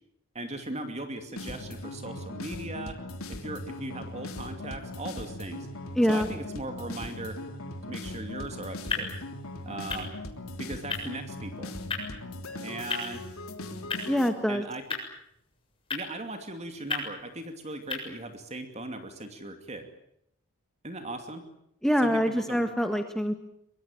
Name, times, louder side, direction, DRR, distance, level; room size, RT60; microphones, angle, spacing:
voice 1, 0.3-3.0 3.3-5.7 6.1-7.4 7.9-9.1 9.6-10.1 10.6-11.7 12.6-13.2 14.5-14.8 15.9-19.9 20.8-21.5 22.0-22.6, right 2 dB, 30° right, 7 dB, 2.7 m, -38 dB
sound 1, 1.4-14.3, left 2 dB, 70° left, 3.1 m, -39 dB
voice 2, 5.9-6.3 14.1-14.6 21.8-23.3, equal, ahead, 6 dB, 1.6 m, -25 dB
sound 2, 8.0-18.5, left 4 dB, 25° left, 7.3 m, -39 dB
23.5 x 23.0 x 9.1 m, 0.75 s
head